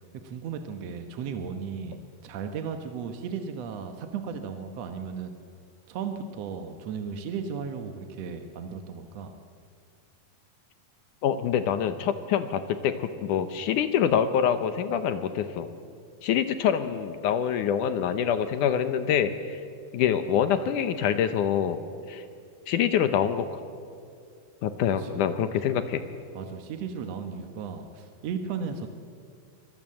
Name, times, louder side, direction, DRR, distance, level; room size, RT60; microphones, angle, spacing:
voice 1, 0.1-5.3 5.9-9.3 25.0-25.2 26.3-28.9, right 6 dB, 65° right, 6 dB, 1.6 m, -35 dB
voice 2, 11.2-15.7 16.2-19.6 19.9-21.8 22.1-22.2 22.7-23.6 24.6-26.0, left 8 dB, 70° left, 10 dB, 2.1 m, -25 dB
24.5 x 20.0 x 7.6 m, 2.3 s
omnidirectional pair, 4.3 m